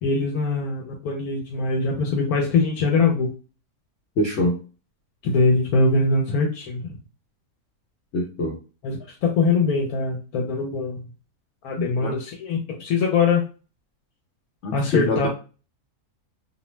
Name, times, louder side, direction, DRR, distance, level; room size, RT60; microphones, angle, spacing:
voice 1, 0.0-3.3 5.2-7.0 8.8-11.0 11.6-13.4 14.7-15.3, left 3 dB, 80° left, 1 dB, 1.1 m, -22 dB
voice 2, 4.2-4.6 8.1-8.6 11.8-12.1 14.6-15.3, left 1 dB, 60° left, -2 dB, 0.9 m, -24 dB
2.5 x 2.1 x 3.1 m, 0.33 s
omnidirectional pair, 1.6 m